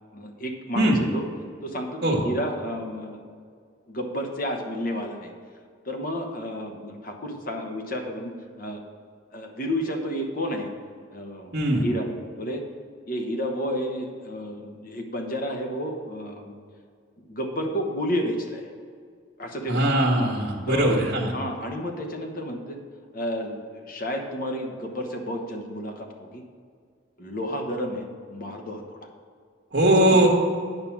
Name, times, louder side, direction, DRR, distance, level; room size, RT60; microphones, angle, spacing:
voice 1, 0.1-1.2 1.6-3.2 3.9-5.3 5.8-8.3 8.6-8.8 9.3-10.7 11.1-12.1 12.4-12.6 13.1-16.5 17.3-18.7 19.4-19.8 20.6-22.8 23.1-26.4 27.2-29.1 30.0-30.3, equal, 45° left, 3 dB, 1.1 m, -31 dB
voice 2, 11.5-11.8 19.7-21.3 29.7-30.3, right 1 dB, 55° right, -3 dB, 1.4 m, -20 dB
9.1 x 5.6 x 5.9 m, 2.1 s
head